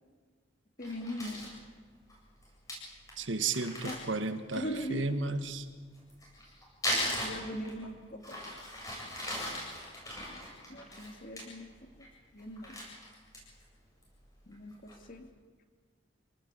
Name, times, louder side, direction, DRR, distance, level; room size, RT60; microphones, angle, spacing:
voice 1, 0.8-1.5 3.8-4.0 4.5-5.4 7.2-8.5 10.7-11.9 12.3-12.8 14.5-15.3, equal, 45° left, 6 dB, 2.6 m, -40 dB
Crumpling crinkling, 0.8-1.5 2.1-2.2 2.4-2.5 2.7-2.8 3.1-3.2 3.5-4.8 5.9-7.9 8.2-11.4 11.8-12.1 12.4-13.6 14.0-14.1 14.5-15.0, left 1 dB, 15° left, 8.0 m, -38 dB
voice 2, 3.2-4.6 4.9-5.6, right 3 dB, 75° right, 9 dB, 1.8 m, -33 dB
27.0 x 19.0 x 8.4 m, 1.5 s
head